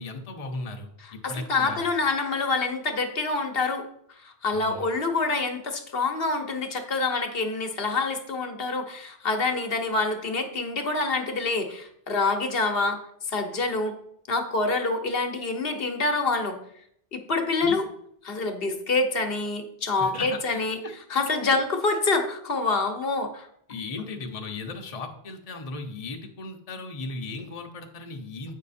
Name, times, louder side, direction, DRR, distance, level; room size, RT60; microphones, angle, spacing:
voice 1, 0.0-1.8 4.5-4.9 17.6-17.8 20.0-20.9 21.4-21.6 23.7-28.5, left 3 dB, 40° left, 3 dB, 0.9 m, -37 dB
voice 2, 1.0-13.0 13.3-13.9 14.3-16.6 17.1-17.8 18.2-20.8 21.1-23.5, left 3 dB, 65° left, 5 dB, 1.1 m, -26 dB
8.1 x 5.5 x 4.2 m, 0.70 s
omnidirectional pair, 1.0 m